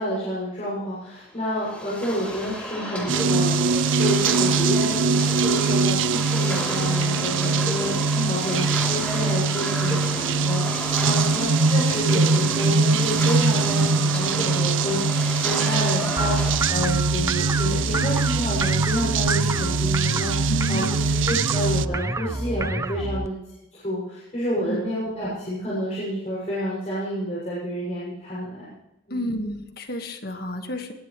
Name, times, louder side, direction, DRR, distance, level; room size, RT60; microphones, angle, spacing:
voice 1, 0.0-28.7 29.1-29.4, equal, 35° left, -8 dB, 7.1 m, -29 dB
sound 1, 1.4-16.6, equal, 5° left, 3.5 m, -32 dB
sound 2, 3.1-21.9, right 4 dB, 85° right, 0.6 m, -22 dB
sound 3, 16.2-23.3, right 2 dB, 15° right, 0.5 m, -28 dB
voice 2, 20.5-21.0 24.7-24.8 29.1-30.9, equal, 55° left, 5 dB, 1.9 m, -30 dB
21.5 x 19.5 x 3.3 m, 0.95 s
head